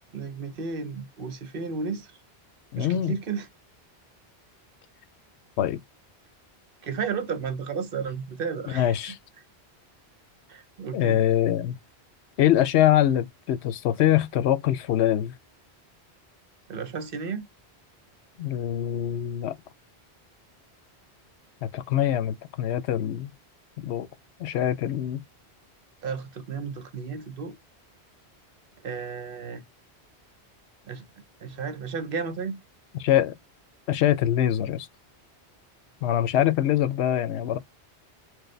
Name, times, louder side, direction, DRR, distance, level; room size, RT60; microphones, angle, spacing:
voice 1, 0.1-2.1 2.8-3.5 6.8-9.2 10.5-11.2 16.7-17.4 26.0-27.6 28.8-29.6 30.8-31.1 31.4-32.6, right 5 dB, 60° right, 0.9 m, -33 dB
voice 2, 2.7-3.1 5.6-5.8 8.7-9.2 10.9-11.8 12.4-15.3 18.4-19.6 21.7-23.3 23.8-24.1 24.4-25.2 33.0-33.3 33.9-34.9 36.0-37.6, left 11 dB, 90° left, 0.9 m, -23 dB
4.7 x 2.2 x 3.2 m
omnidirectional pair, 1.1 m